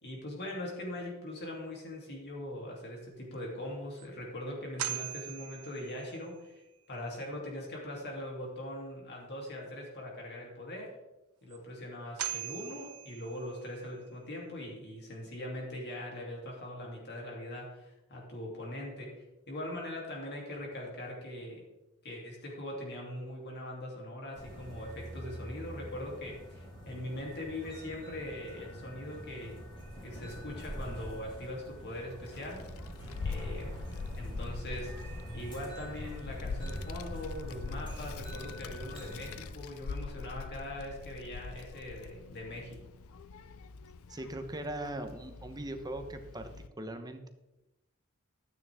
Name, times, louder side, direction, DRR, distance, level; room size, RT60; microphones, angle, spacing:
voice 1, 0.0-6.5 6.9-10.9 11.4-21.7 22.0-29.5 30.0-32.6 33.2-33.7 34.2-35.0 35.3-42.8, left 1 dB, 50° left, -2 dB, 3.0 m, -41 dB
sound 1, 3.3-3.4 4.0-4.1 4.8-6.4 11.5-11.6 12.2-13.8, right 12 dB, 90° right, 0.9 m, -40 dB
sound 2, 24.3-39.5, equal, 25° left, 4.0 m, -44 dB
Child speech kid speaking, 32.2-46.7, left 4 dB, 75° left, 0.5 m, -43 dB
voice 2, 44.1-46.5 46.8-47.3, right 1 dB, 20° right, 6 dB, 1.0 m, -40 dB
12.5 x 9.5 x 3.6 m, 1.0 s
head